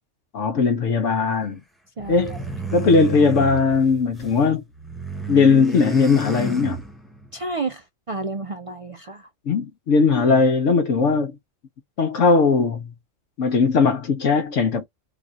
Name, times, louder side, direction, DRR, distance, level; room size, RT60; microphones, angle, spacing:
voice 1, 0.3-1.6 2.1-2.4 2.7-4.6 5.3-6.8 9.5-11.4 12.0-12.9 13.4-14.9, left 4 dB, 75° left, 1.1 m, -19 dB
sound 1, 2.0-4.4 4.7-7.3, right 1 dB, ahead, 1.1 m, -31 dB
voice 2, 2.0-2.4 7.3-9.3, right 3 dB, 60° right, 0.3 m, -31 dB
4.0 x 2.4 x 4.0 m
omnidirectional pair, 1.3 m